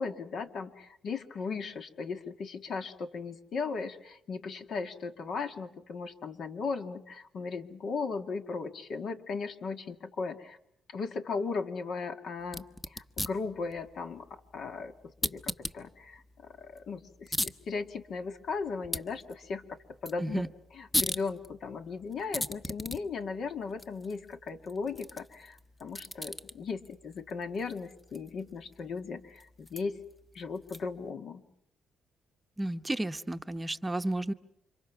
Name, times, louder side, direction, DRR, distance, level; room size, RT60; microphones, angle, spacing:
voice 1, 0.0-10.6 10.9-14.9 15.2-19.6 20.0-20.5 20.7-30.0 30.3-31.4, left 4 dB, 65° left, 6 dB, 2.2 m, -37 dB
sound 1, 12.4-31.1, left 1 dB, 15° left, 1.1 m, -40 dB
voice 2, 32.6-34.3, right 1 dB, 15° right, 8 dB, 0.9 m, -32 dB
29.0 x 26.0 x 6.0 m, 0.73 s
cardioid pair, 90°, 0 cm